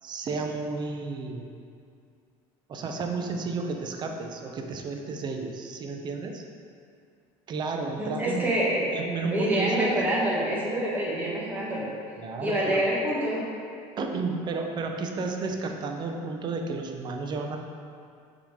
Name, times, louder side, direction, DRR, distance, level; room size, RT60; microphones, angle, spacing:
voice 1, 0.0-1.5 2.7-6.4 7.5-8.5 8.9-10.1 12.1-12.8 14.0-17.6, right 3 dB, 35° right, 3 dB, 0.7 m, -32 dB
voice 2, 8.0-8.9 9.2-11.9 12.4-13.5, right 1 dB, 15° right, -6 dB, 1.6 m, -26 dB
6.3 x 4.0 x 5.0 m, 2.3 s
cardioid pair, 125°, 13 cm